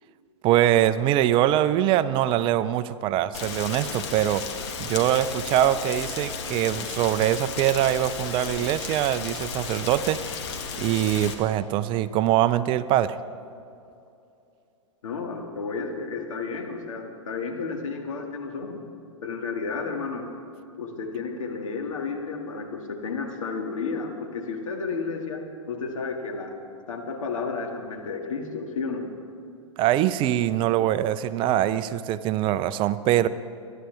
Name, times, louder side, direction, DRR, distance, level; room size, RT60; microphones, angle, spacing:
voice 1, 0.4-4.4 4.8-10.2 10.8-13.2 29.8-33.3, right 12 dB, 30° right, 14 dB, 0.5 m, -23 dB
Rain, 3.3-11.3, left 5 dB, 55° left, 1.9 m, -34 dB
voice 2, 15.0-18.8 19.2-20.3 20.8-26.6 26.9-29.1, left 4 dB, 75° left, 2 dB, 2.2 m, -32 dB
24.5 x 11.5 x 3.5 m, 2.6 s
hypercardioid pair, 120°, 17 cm